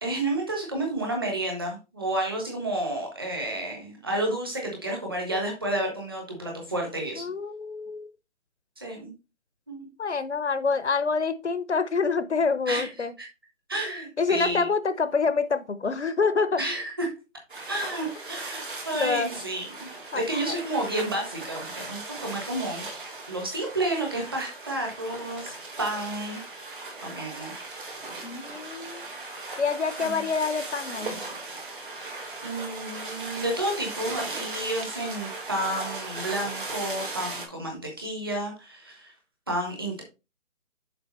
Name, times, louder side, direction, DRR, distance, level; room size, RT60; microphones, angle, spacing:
voice 1, 0.0-7.3 8.8-9.1 9.7-9.9 12.7-12.9 13.2-13.3 13.7-14.7 16.6-17.1 17.7-19.9 20.1-22.8 23.3-26.4 27.0-27.5 30.0-30.2 32.4-39.1 39.5-40.0, right 1 dB, 20° right, 1 dB, 1.3 m, -31 dB
voice 2, 7.2-8.1 10.0-13.1 14.2-16.6 18.9-19.3 20.1-20.6 28.2-29.1 29.6-31.2, left 4 dB, 60° left, 13 dB, 0.8 m, -27 dB
sound 1, 17.5-37.5, right 3 dB, 40° right, 1.9 m, -38 dB
6.8 x 4.9 x 4.1 m, 0.28 s
hypercardioid pair, 180°, 39 cm